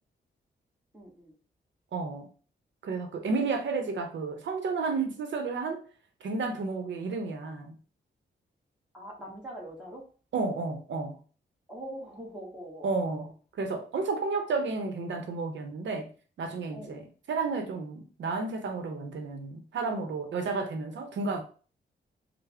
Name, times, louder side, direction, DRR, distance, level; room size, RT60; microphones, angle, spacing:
voice 1, 0.9-1.3 8.9-10.1 11.7-13.3 16.7-17.1, equal, 5° right, 1.1 m, -43 dB
voice 2, 1.9-2.3 2.8-5.8 6.2-7.7 10.3-11.2 12.8-13.3 13.6-16.1 16.4-17.0 17.3-21.4, right 4 dB, 80° right, 0.7 m, -32 dB
3.3 x 2.0 x 3.5 m
wide cardioid pair, 140°, 19 cm